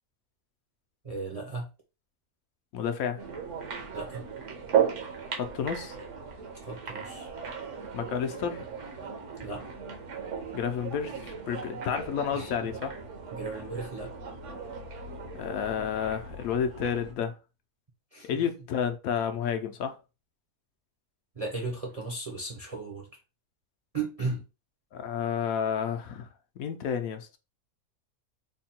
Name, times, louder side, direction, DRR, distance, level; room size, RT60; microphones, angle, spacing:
voice 1, 1.0-1.7 3.9-4.3 6.6-7.3 9.4-9.7 12.3-12.5 13.3-14.1 18.1-18.4 21.4-23.1 23.9-24.4, right 3 dB, 35° right, 0.6 m, -35 dB
voice 2, 2.7-3.2 5.3-6.0 7.9-8.7 10.5-12.9 15.3-17.4 18.2-20.0 24.9-26.3 26.6-27.4, left 7 dB, 75° left, 1.0 m, -31 dB
sound 1, 3.2-17.1, right 7 dB, 60° right, 1.1 m, -36 dB
3.6 x 2.2 x 4.2 m
omnidirectional pair, 1.6 m